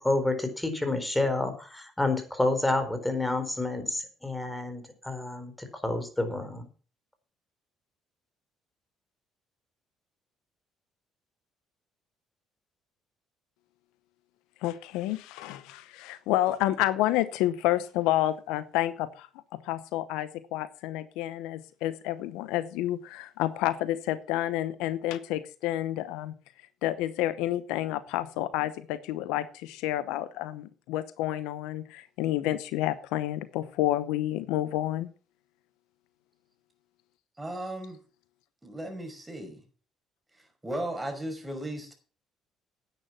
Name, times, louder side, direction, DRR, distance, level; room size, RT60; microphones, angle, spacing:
voice 1, 0.0-6.6, left 2 dB, 10° left, 8 dB, 4.4 m, -29 dB
voice 2, 14.6-26.3 26.8-35.1, left 14 dB, 80° left, 15 dB, 0.8 m, -29 dB
voice 3, 37.4-38.0 38.6-39.6 40.6-41.9, right 1 dB, 15° right, 5 dB, 5.6 m, -36 dB
10.5 x 9.3 x 5.9 m, 0.38 s
hypercardioid pair, 60°, 0 cm